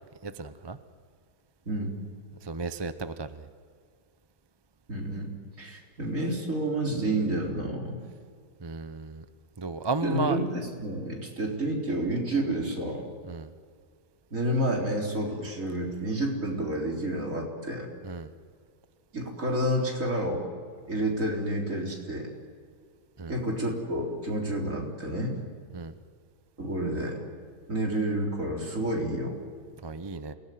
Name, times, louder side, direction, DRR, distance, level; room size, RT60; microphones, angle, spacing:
voice 1, 0.2-0.8 2.4-3.5 8.6-9.2 9.6-10.4 13.2-13.5 18.0-18.3 23.2-23.4 25.7-25.9 29.8-30.3, right 3 dB, 30° right, 11 dB, 0.5 m, -34 dB
voice 2, 1.7-2.0 4.9-5.3 5.6-8.0 10.0-13.1 14.3-17.9 19.1-20.4 20.9-22.3 23.3-25.4 26.6-27.2 27.7-29.4, right 1 dB, 50° right, 0 dB, 4.2 m, -29 dB
27.5 x 18.0 x 9.3 m, 2.1 s
omnidirectional pair, 1.8 m